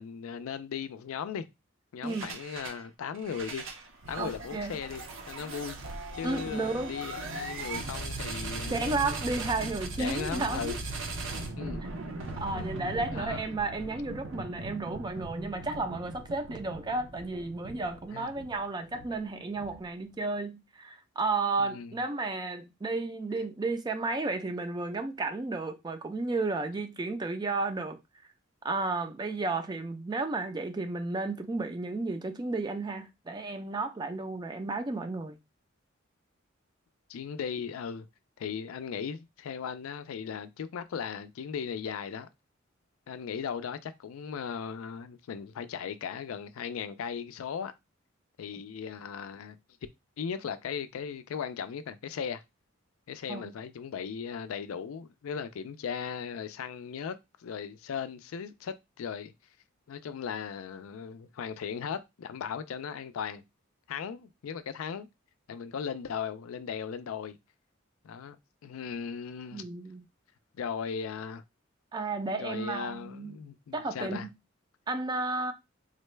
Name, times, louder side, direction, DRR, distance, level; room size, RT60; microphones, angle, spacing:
voice 1, 0.0-1.5 1.9-3.7 4.1-5.8 6.1-9.1 9.6-9.7 10.0-10.8 11.6-11.8 12.5-12.7 13.1-13.4 18.1-18.3 21.6-22.0 37.1-38.1 38.4-42.3 43.1-47.7 48.4-49.6 50.2-52.4 53.1-59.3 59.9-63.4 63.9-65.1 65.5-67.4 68.0-68.4 68.6-69.6 70.6-71.4 72.4-74.3, left 7 dB, 90° left, 0.4 m, -37 dB
sound 1, 2.0-2.8 3.1-20.1, right 2 dB, 70° right, 0.7 m, -39 dB
voice 2, 4.2-4.7 6.2-6.9 8.7-10.8 12.4-28.0 28.6-35.4 53.3-53.5 69.5-70.0 71.9-73.4 73.7-74.3 74.9-75.5, right 3 dB, 20° right, 0.4 m, -33 dB
3.8 x 2.1 x 3.2 m
head